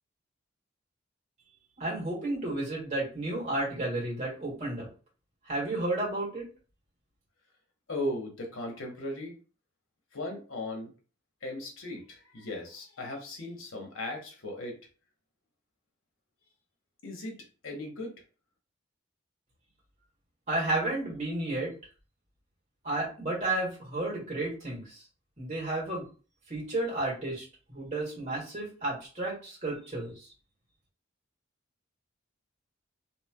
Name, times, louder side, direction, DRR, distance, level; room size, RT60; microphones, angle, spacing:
voice 1, 1.8-4.9 5.5-6.5 20.5-21.7 22.8-25.0 25.4-26.1 26.5-30.3, right 2 dB, 35° right, -4 dB, 1.6 m, -32 dB
voice 2, 7.9-9.4 10.1-10.9 11.4-14.8 17.0-17.4 17.6-18.1, left 1 dB, 70° left, 1 dB, 1.0 m, -37 dB
3.2 x 2.8 x 2.2 m, 0.37 s
head